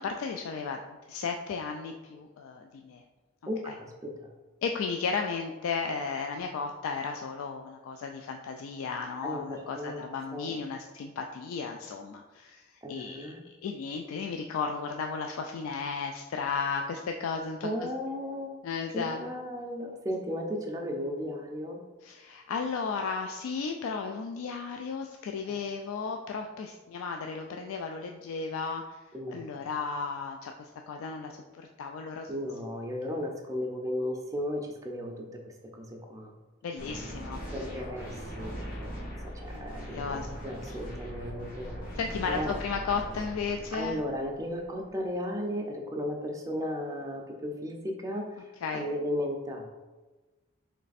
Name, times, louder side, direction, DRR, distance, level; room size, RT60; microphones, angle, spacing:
voice 1, 0.0-3.0 3.7-3.8 4.6-17.9 18.6-19.2 22.0-29.0 29.3-32.3 36.6-37.4 39.5-40.4 40.7-40.8 42.0-44.0 48.6-48.9, left 5 dB, 75° left, 3 dB, 0.3 m, -34 dB
voice 2, 3.5-4.3 9.2-10.1 10.3-10.6 12.8-13.4 17.6-18.5 18.9-21.8 25.5-25.6 29.1-29.7 32.3-36.3 37.5-42.6 43.7-49.7, left 1 dB, 15° right, 1 dB, 0.5 m, -35 dB
sound 1, 36.8-44.9, equal, 40° left, 1.0 m, -40 dB
3.3 x 3.2 x 4.0 m, 1.2 s
head